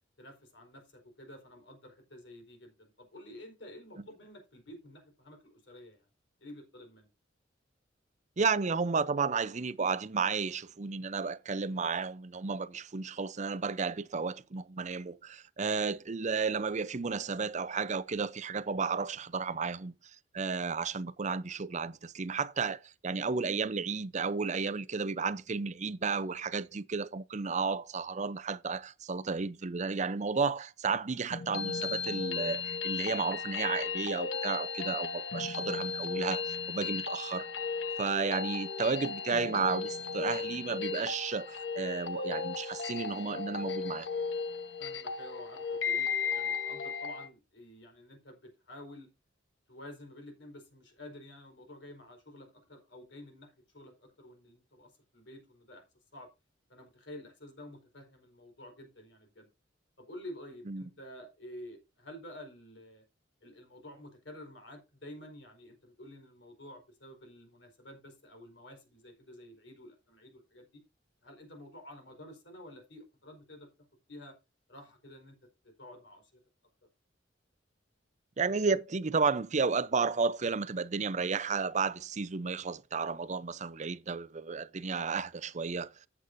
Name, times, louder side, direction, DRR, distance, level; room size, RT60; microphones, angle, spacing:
voice 1, 0.2-6.1 6.4-7.1 36.8-37.0 44.8-49.1 49.7-55.8 56.1-56.3 56.7-59.5 60.0-63.0 63.4-70.8 71.2-73.7 74.1-74.4 74.7-75.4 75.6-76.4, left 1 dB, 70° left, 4.7 m, -50 dB
voice 2, 8.4-19.9 20.3-37.5 38.0-44.1 60.7-60.8 78.4-85.9, right 5 dB, 40° right, 0.6 m, -32 dB
sound 1, 31.3-47.3, left 5 dB, 85° left, 1.2 m, -35 dB
14.0 x 8.3 x 2.7 m
head